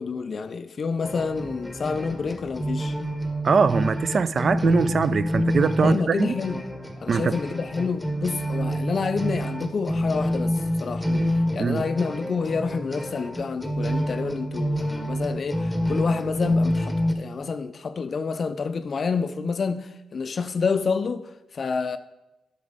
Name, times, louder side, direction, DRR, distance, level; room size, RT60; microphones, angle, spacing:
voice 1, 0.0-3.0 5.8-6.6 7.0-22.0, left 5 dB, 45° left, 0.4 m, -28 dB
sound 1, 1.0-17.1, equal, ahead, 1.1 m, -27 dB
voice 2, 3.4-6.3 7.1-7.3 11.1-11.3 11.6-11.8, right 5 dB, 50° right, 0.3 m, -22 dB
8.0 x 6.1 x 5.0 m
cardioid pair, 85°, 0 cm